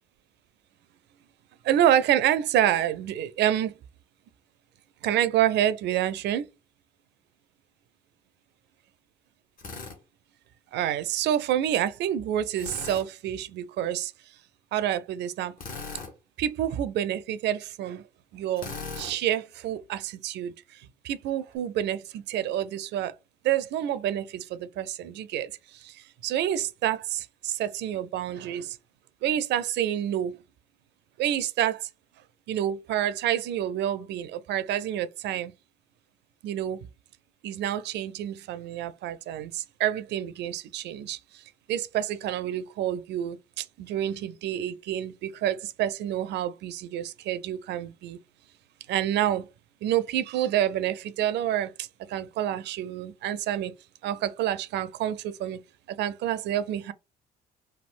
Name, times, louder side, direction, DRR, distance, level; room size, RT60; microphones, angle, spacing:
voice 1, 1.6-3.7 5.0-6.5 10.7-14.1 14.7-15.6 16.4-18.0 18.3-23.1 23.4-28.8 29.2-30.4 31.2-31.9 32.5-35.5 36.4-36.9 37.4-41.4 41.7-48.2 48.9-49.5 49.8-53.7 54.0-55.6 55.9-56.9, right 11 dB, 65° right, 0.4 m, -28 dB
Drill, 9.6-10.0 12.6-13.1 15.6-16.1 18.6-19.1, left 4 dB, 50° left, 1.1 m, -38 dB
3.4 x 2.3 x 2.4 m
supercardioid pair, 65°, 19 cm